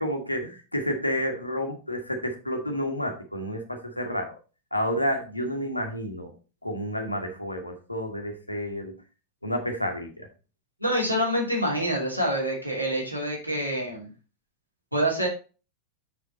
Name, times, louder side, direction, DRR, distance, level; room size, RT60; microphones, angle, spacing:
voice 1, 0.0-4.4 4.7-6.3 6.6-8.9 9.4-10.3, equal, 85° left, 4 dB, 1.6 m, -30 dB
voice 2, 10.8-14.1 14.9-15.3, equal, 90° right, -2 dB, 3.0 m, -26 dB
6.7 x 6.4 x 4.2 m, 0.34 s
figure-of-eight pair, 90°, 0 cm